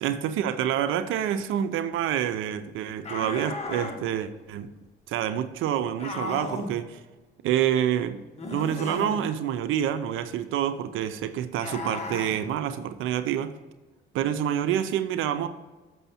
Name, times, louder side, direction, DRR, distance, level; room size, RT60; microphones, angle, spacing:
voice 1, 0.0-4.7 5.1-7.0 7.4-8.2 8.5-13.5 14.1-15.5, right 10 dB, 85° right, 0.5 m, -27 dB
sound 1, 3.0-4.0 6.0-6.7 8.4-9.2 11.5-12.4, left 3 dB, 35° left, 1.6 m, -34 dB
6.8 x 6.2 x 4.2 m
cardioid pair, 90°, 20 cm